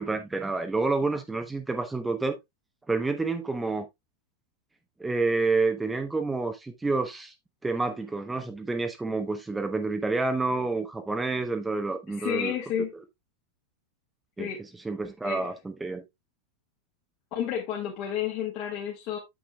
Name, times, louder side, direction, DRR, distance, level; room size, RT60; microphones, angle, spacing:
voice 1, 0.0-2.4 2.9-3.8 5.0-7.3 7.6-12.5 14.4-14.5 14.8-16.0, right 3 dB, 10° right, 0.9 m, -28 dB
voice 2, 12.1-12.9 14.4-14.6 15.2-15.5 17.3-19.2, left 8 dB, 40° left, 2.0 m, -31 dB
8.4 x 7.3 x 2.3 m
figure-of-eight pair, 90°, 0 cm